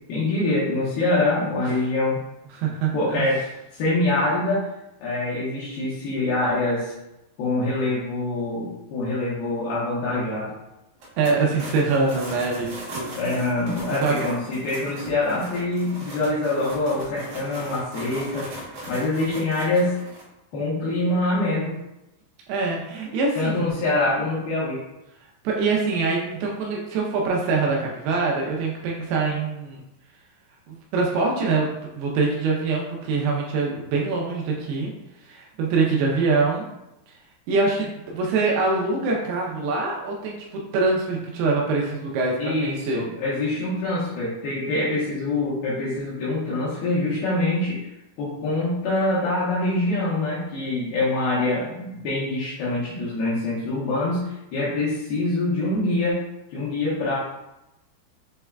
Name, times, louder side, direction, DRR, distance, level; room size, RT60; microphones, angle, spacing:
voice 1, 0.1-2.2 2.9-3.4 3.7-4.6 5.0-6.9 7.4-10.5 13.2-20.0 20.5-21.7 23.4-24.8 42.4-47.9 48.2-56.2 56.5-57.2, left 2 dB, 75° left, -9 dB, 2.7 m, -25 dB
voice 2, 2.5-3.3 11.2-13.1 13.9-14.2 22.5-23.7 25.4-29.8 30.7-31.7 32.0-34.9 35.2-36.7 37.1-37.2 37.5-40.4 40.7-43.0, right 4 dB, 85° right, -2 dB, 2.7 m, -24 dB
sound 1, 11.0-20.2, right 1 dB, 65° right, 2.1 m, -39 dB
7.0 x 3.4 x 2.2 m, 0.92 s
omnidirectional pair, 4.5 m